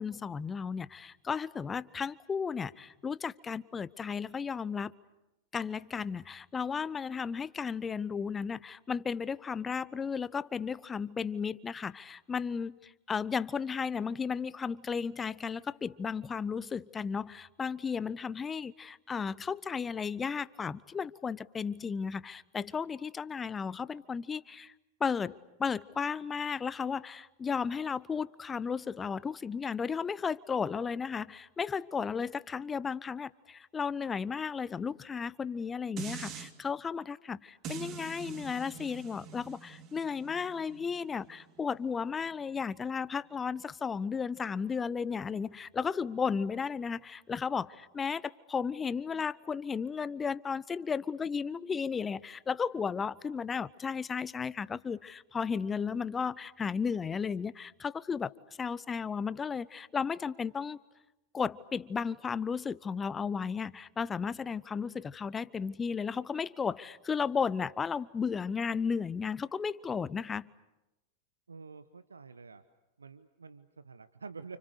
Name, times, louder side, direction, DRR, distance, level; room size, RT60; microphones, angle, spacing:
voice 1, 0.0-4.9 5.5-24.7 25.0-58.3 58.6-60.8 61.3-70.5, left 6 dB, 20° left, 18 dB, 0.9 m, -34 dB
sound 1, 36.0-36.5 37.6-42.8 43.2-43.3, right 7 dB, 35° right, 3.0 m, -45 dB
voice 2, 71.5-72.6 73.0-74.6, right 5 dB, 75° right, 12 dB, 1.1 m, -48 dB
30.0 x 29.5 x 6.7 m, 0.96 s
figure-of-eight pair, 90°, 0 cm